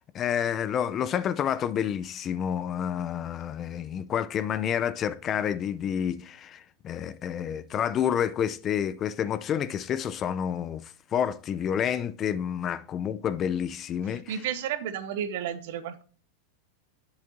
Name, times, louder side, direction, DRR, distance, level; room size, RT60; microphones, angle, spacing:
voice 1, 0.1-14.3, left 9 dB, 35° left, 0.4 m, -29 dB
voice 2, 14.1-16.0, right 9 dB, 65° right, 0.8 m, -32 dB
7.6 x 7.1 x 2.6 m
hypercardioid pair, 110°, 0 cm